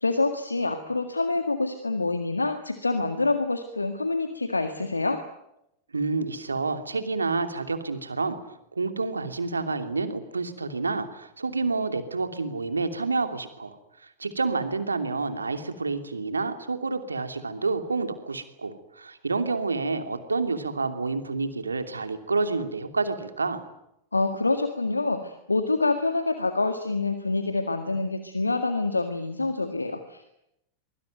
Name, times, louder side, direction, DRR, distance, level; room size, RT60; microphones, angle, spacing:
voice 1, 0.0-5.2 24.1-30.3, left 3 dB, 80° left, 8 dB, 1.8 m, -26 dB
voice 2, 5.9-8.4 8.7-23.6, right 3 dB, 75° right, 8 dB, 2.8 m, -29 dB
24.5 x 23.0 x 9.2 m, 0.83 s
figure-of-eight pair, 90°, 0 cm